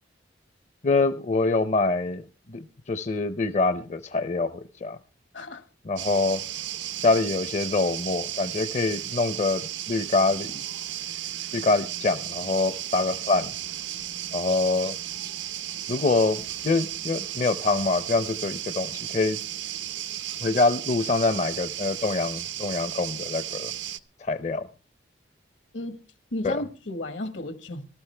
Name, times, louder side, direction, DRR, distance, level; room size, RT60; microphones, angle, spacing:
voice 1, 0.8-2.2 2.5-5.0 5.9-6.4 7.0-9.6 9.9-10.6 11.5-13.5 14.3-14.9 15.9-19.4 20.4-23.7 24.2-24.7 26.4-26.6, left 3 dB, 40° left, 0.6 m, -25 dB
sound 1, 6.0-24.0, right 12 dB, 80° right, 0.7 m, -34 dB
voice 2, 26.3-27.9, left 1 dB, 75° left, 1.4 m, -33 dB
19.0 x 13.0 x 3.3 m
head